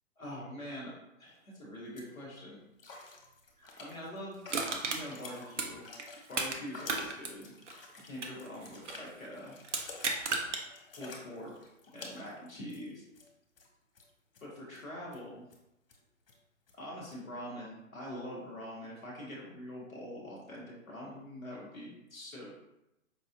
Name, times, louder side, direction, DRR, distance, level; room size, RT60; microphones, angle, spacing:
voice 1, 0.2-0.9 1.2-2.6 3.6-4.4 4.9-5.8 6.3-7.5 8.0-9.5 10.9-11.5 11.9-13.0 14.4-15.4 16.7-22.5, equal, 5° left, -14 dB, 0.4 m, -44 dB
sound 1, 1.3-1.4 1.7-2.1 2.8-13.3 13.6-13.7 13.9-14.4 14.7-14.8 15.1-15.2 15.5-15.6 15.9-16.0 16.3-16.4 16.7-16.8 17.1-17.2, left 3 dB, 45° left, 0.7 m, -51 dB
Crushing, 4.5-6.6 6.9-9.1 9.6-10.6 11.1-11.2, right 4 dB, 60° right, 0.7 m, -34 dB
4.8 x 2.6 x 2.5 m, 0.88 s
figure-of-eight pair, 125°, 40 cm